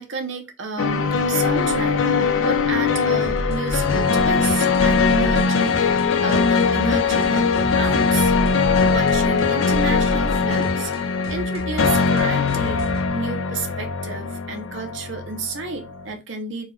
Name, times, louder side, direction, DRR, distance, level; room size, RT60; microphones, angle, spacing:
voice 1, 0.0-2.0 2.4-8.4 8.8-16.7, right 4 dB, 70° right, 4 dB, 0.7 m, -31 dB
sound 1, 0.8-16.0, left 5 dB, 75° left, 0.4 m, -21 dB
sound 2, 3.2-13.1, equal, 50° left, 0.9 m, -31 dB
3.5 x 2.4 x 3.3 m, 0.27 s
head